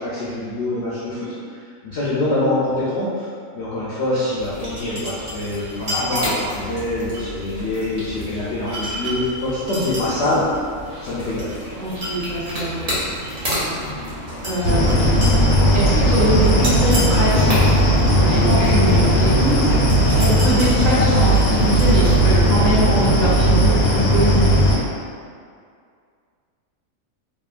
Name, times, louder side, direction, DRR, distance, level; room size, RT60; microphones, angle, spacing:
voice 1, 0.0-3.3 3.5-10.4 11.0-11.5, left 1 dB, 65° left, -9 dB, 0.7 m, -24 dB
sound 1, 4.4-22.5, equal, 35° right, 0.6 m, -30 dB
voice 2, 11.7-12.9 14.4-15.2 15.7-17.8 18.1-19.7 20.1-24.4, right 1 dB, 70° right, -9 dB, 1.2 m, -23 dB
sound 2, 14.6-24.8, equal, 85° left, 1.0 m, -16 dB
2.7 x 2.4 x 2.4 m, 2.2 s
omnidirectional pair, 1.4 m